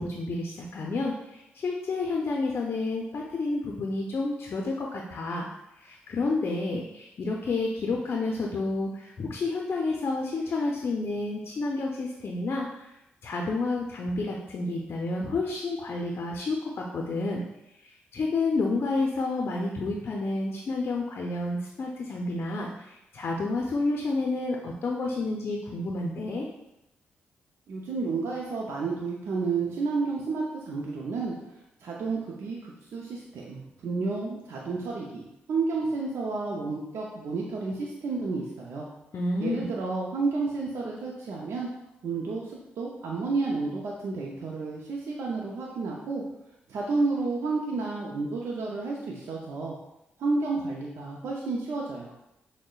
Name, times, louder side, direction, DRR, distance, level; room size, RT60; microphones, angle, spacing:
voice 1, 0.0-5.5 5.8-12.9 13.2-17.4 17.8-26.5 39.1-39.7, left 3 dB, 55° left, 0 dB, 0.5 m, -30 dB
voice 2, 27.7-31.3 31.8-38.9 39.4-41.7 42.0-46.2 46.7-49.8 50.2-52.1, right 3 dB, 70° right, -3 dB, 0.5 m, -31 dB
6.1 x 2.1 x 2.3 m, 0.88 s
supercardioid pair, 45°, 5 cm